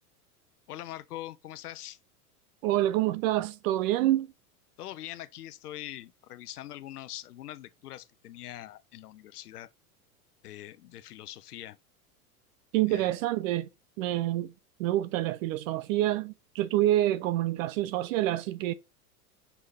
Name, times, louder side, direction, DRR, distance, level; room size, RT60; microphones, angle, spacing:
voice 1, 0.7-2.0 4.8-9.7 10.4-11.8 12.9-13.1, left 13 dB, 80° left, 0.8 m, -43 dB
voice 2, 2.6-4.3 12.7-13.7 14.0-14.5 14.8-18.7, right 14 dB, 60° right, 0.8 m, -27 dB
6.3 x 5.7 x 5.4 m
hypercardioid pair, 95°, 46 cm